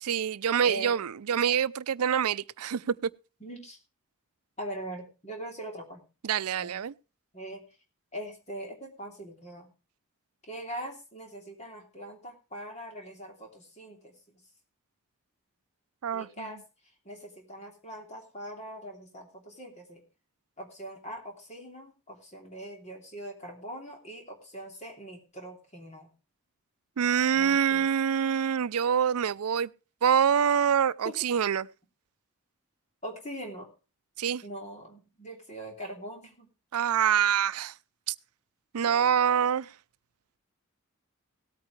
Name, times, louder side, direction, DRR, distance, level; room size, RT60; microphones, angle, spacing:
voice 1, 0.0-3.1 6.2-6.9 16.0-16.3 27.0-29.7 30.0-31.7 34.2-34.4 36.7-37.7 38.1-38.2 38.7-39.7, right 8 dB, 90° right, 0.5 m, -25 dB
voice 2, 3.4-3.8 4.6-6.0 6.6-6.8 7.3-7.6 8.1-9.7 10.5-14.1 16.1-16.6 17.0-20.0 20.6-26.1 27.3-27.9 31.0-31.2 33.0-33.7 34.4-36.5 38.8-39.5, right 1 dB, 30° left, 3.0 m, -42 dB
18.0 x 9.0 x 3.2 m
head